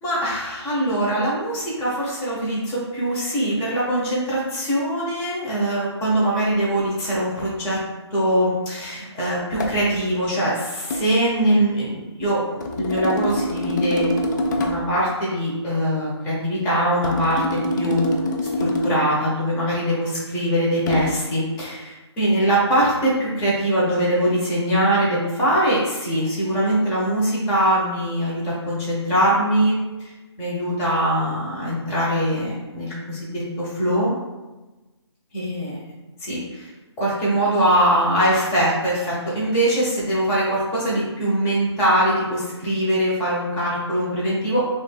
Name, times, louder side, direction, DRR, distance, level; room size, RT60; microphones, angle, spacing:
voice 1, 0.0-7.8 8.1-14.1 14.6-18.1 18.6-29.8 30.4-34.1 35.3-35.8 36.2-36.7 37.0-44.7, right 1 dB, 15° left, -6 dB, 1.1 m, -22 dB
sound 1, 9.6-9.9 10.9-11.1 12.6-14.9 17.0-19.1 20.9-21.2, left 1 dB, 40° left, 0.5 m, -25 dB
5.1 x 3.3 x 2.3 m, 1.1 s
figure-of-eight pair, 150°, 15 cm